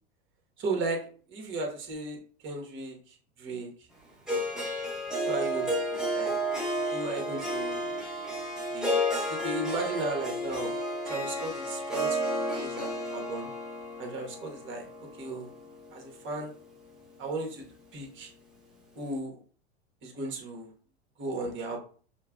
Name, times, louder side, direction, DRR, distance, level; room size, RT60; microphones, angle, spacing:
voice 1, 0.6-1.0 1.3-3.0 3.4-3.7 4.3-4.7 5.2-6.3 6.9-7.9 8.7-9.0 9.3-10.7 11.1-13.5 14.0-14.9 15.2-15.5 15.9-16.5 17.2-17.6 17.9-18.3 18.9-19.4 20.0-20.7 21.2-21.8, right 2 dB, 40° right, 2 dB, 1.3 m, -35 dB
Harp, 4.3-16.4, equal, ahead, 0.9 m, -32 dB
5.4 x 2.2 x 2.4 m, 0.43 s
hypercardioid pair, 100°, 32 cm